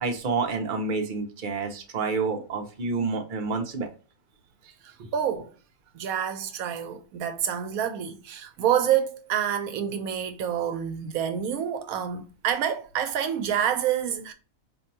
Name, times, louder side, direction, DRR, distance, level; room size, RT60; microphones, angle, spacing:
voice 1, 0.0-3.9 5.0-5.1, right 4 dB, 45° right, 0.8 m, -29 dB
voice 2, 4.8-5.5 5.9-14.3, right 9 dB, 80° right, 1.0 m, -28 dB
4.3 x 2.7 x 2.6 m
omnidirectional pair, 1.5 m